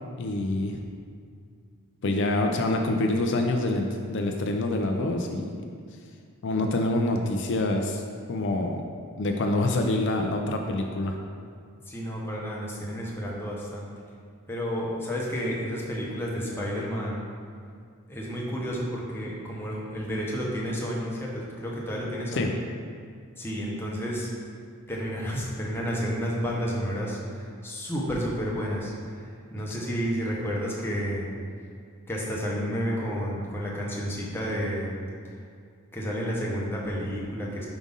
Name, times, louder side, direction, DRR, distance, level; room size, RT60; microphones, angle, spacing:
voice 1, 0.2-0.8 2.0-5.6 6.4-8.0 8.3-8.8 9.2-11.2 22.3-22.5, left 2 dB, 55° left, 3 dB, 0.5 m, -26 dB
voice 2, 11.9-13.9 14.5-17.2 18.1-22.5 23.4-24.3 24.9-31.3 32.1-34.9 35.9-37.7, equal, 10° left, -4 dB, 0.9 m, -31 dB
5.0 x 3.7 x 5.4 m, 2.2 s
head